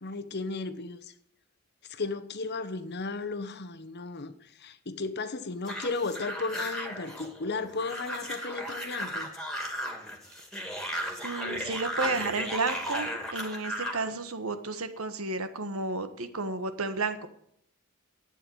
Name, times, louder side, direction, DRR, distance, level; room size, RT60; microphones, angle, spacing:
voice 1, 0.0-1.1 1.9-9.3, left 3 dB, 50° left, 1.0 m, -35 dB
sound 1, 5.7-14.0, equal, 5° left, 2.5 m, -35 dB
voice 2, 11.2-17.3, right 3 dB, 75° right, 1.4 m, -32 dB
11.5 x 8.9 x 9.4 m
head